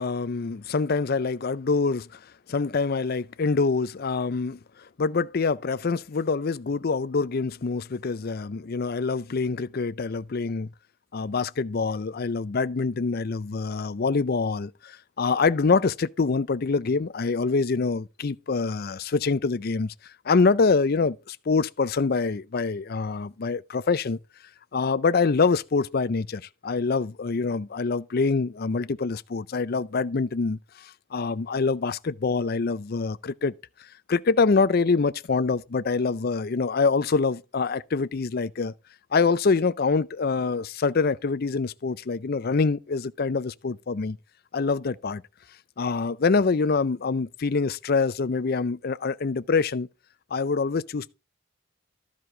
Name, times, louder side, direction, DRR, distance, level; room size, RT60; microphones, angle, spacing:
voice 1, 0.0-2.2 2.5-4.6 5.0-10.7 11.1-19.9 20.3-24.2 24.7-33.5 34.1-38.7 39.1-44.2 44.5-45.2 45.8-49.9 50.3-51.1, left 4 dB, 45° left, 0.5 m, -25 dB
13.0 x 5.2 x 4.8 m
head